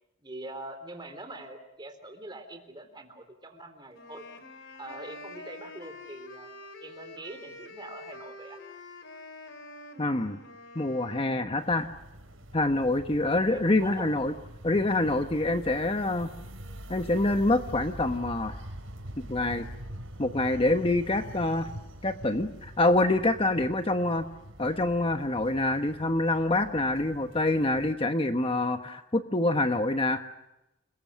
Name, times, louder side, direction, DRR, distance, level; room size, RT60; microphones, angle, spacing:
voice 1, 0.2-4.2 4.8-6.5 6.8-8.6 13.5-14.1, right 2 dB, 20° right, 7 dB, 3.7 m, -43 dB
sound 1, 3.9-11.4, left 2 dB, 65° left, 3.5 m, -46 dB
voice 2, 10.0-10.4 10.7-11.9 12.5-14.3 14.6-16.3 16.9-18.6 19.2-19.6 20.2-21.7 22.0-24.3 24.6-30.2, left 2 dB, 30° left, 7 dB, 1.2 m, -26 dB
sound 2, 11.6-27.9, equal, 90° right, 5.2 m, -44 dB
30.0 x 22.0 x 6.5 m, 0.89 s
head